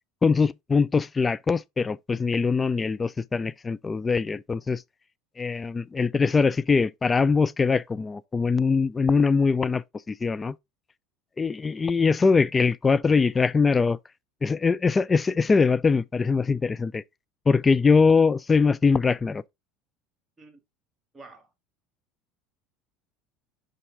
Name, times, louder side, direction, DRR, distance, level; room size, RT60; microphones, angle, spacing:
voice 1, 0.2-4.8 5.4-10.5 11.4-14.0 14.4-17.0 17.5-19.4, left 4 dB, 20° left, 0.4 m, -22 dB
voice 2, 21.1-21.5, right 3 dB, 15° right, 2.3 m, -49 dB
5.5 x 5.4 x 3.3 m
figure-of-eight pair, 70°, 0 cm